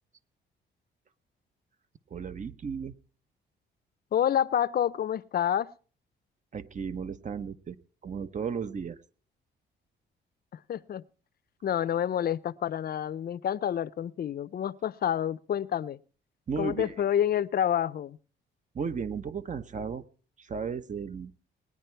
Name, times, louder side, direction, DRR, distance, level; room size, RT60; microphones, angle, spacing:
voice 1, 2.1-2.9 6.5-7.8 8.0-9.0 16.5-16.9 18.7-20.0 20.4-21.3, right 6 dB, 40° right, 0.9 m, -34 dB
voice 2, 4.1-5.7 10.5-11.0 11.6-16.0 16.6-18.2, left 10 dB, 50° left, 0.6 m, -28 dB
19.5 x 9.8 x 4.5 m
cardioid pair, 90°, 20 cm